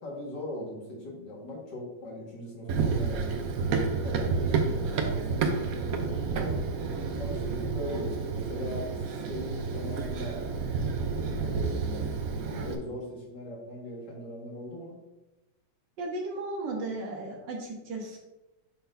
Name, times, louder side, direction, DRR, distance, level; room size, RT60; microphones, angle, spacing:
voice 1, 0.0-3.4 3.8-6.5 7.2-8.9 9.3-10.4 10.7-12.0 12.4-14.9, left 1 dB, 75° left, -3 dB, 2.5 m, -40 dB
Run, 2.7-12.7, right 4 dB, 60° right, 1.1 m, -30 dB
voice 2, 16.0-18.2, right 2 dB, 85° right, -1 dB, 1.7 m, -35 dB
10.5 x 4.0 x 2.7 m, 0.98 s
omnidirectional pair, 1.9 m